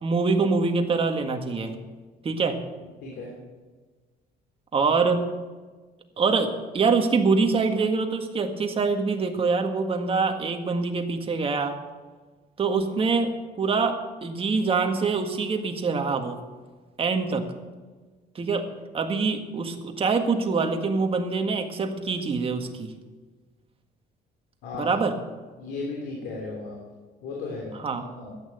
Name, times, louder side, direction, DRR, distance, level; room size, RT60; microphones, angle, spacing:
voice 1, 0.0-1.7 2.2-2.6 4.7-5.2 6.2-11.8 12.6-16.4 17.0-17.4 18.4-18.7 18.9-22.9 24.7-25.2 27.7-28.1, right 4 dB, 35° right, 5 dB, 1.8 m, -25 dB
voice 2, 3.0-3.3 24.6-25.0 25.6-26.8 27.2-28.3, left 3 dB, 85° left, -2 dB, 3.3 m, -35 dB
13.5 x 9.1 x 8.0 m, 1.4 s
cardioid pair, 110°, 17 cm